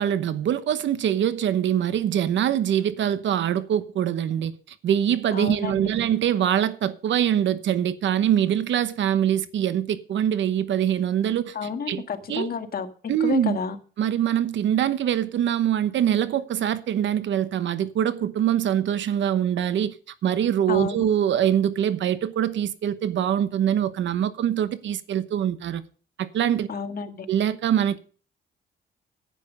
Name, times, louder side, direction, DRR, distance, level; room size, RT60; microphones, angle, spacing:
voice 1, 0.0-4.5 4.8-11.5 11.9-12.0 12.3-12.5 13.1-13.6 14.0-19.9 20.2-25.8 26.2-26.7 27.3-28.0, right 10 dB, 70° right, 1.0 m, -23 dB
voice 2, 5.3-5.9 11.5-12.9 13.2-13.8 20.7-21.1 26.7-27.3, left 6 dB, 50° left, 1.8 m, -30 dB
10.0 x 9.3 x 6.5 m
cardioid pair, 90°, 20 cm